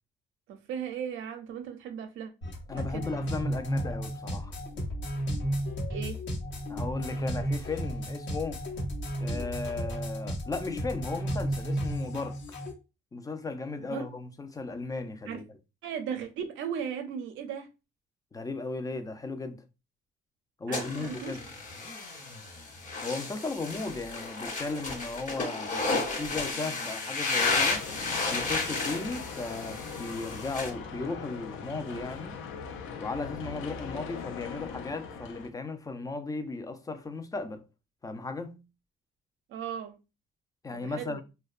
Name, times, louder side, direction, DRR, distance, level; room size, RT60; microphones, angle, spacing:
voice 1, 0.5-2.3 2.7-3.1 5.9-6.2 13.8-14.1 15.3-15.4 15.8-17.7 20.7-21.4 39.5-40.0 40.7-41.2, right 8 dB, 85° right, 0.5 m, -37 dB
sound 1, 2.4-12.7, equal, 65° left, 1.0 m, -33 dB
voice 2, 2.7-4.5 6.7-8.6 9.2-12.4 13.1-15.4 18.3-19.6 20.6-21.4 23.0-25.8 26.1-27.9 28.3-32.4 33.0-37.6 38.0-38.6 40.6-41.2, left 3 dB, 20° left, 0.4 m, -36 dB
sound 2, 20.7-30.7, left 3 dB, 40° left, 1.2 m, -32 dB
sound 3, 27.4-35.5, left 6 dB, 85° left, 0.5 m, -40 dB
2.6 x 2.2 x 2.4 m
cardioid pair, 90°, 20 cm